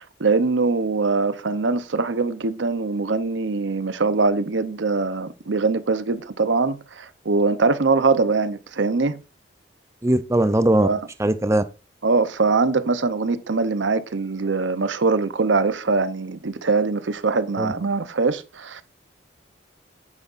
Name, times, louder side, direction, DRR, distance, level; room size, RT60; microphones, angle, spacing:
voice 1, 0.0-9.2 10.8-11.0 12.0-18.8, right 4 dB, 80° right, 0.8 m, -22 dB
voice 2, 10.0-10.9 11.2-11.6 17.6-17.7, right 1 dB, 15° right, 0.5 m, -19 dB
9.9 x 9.2 x 2.6 m
head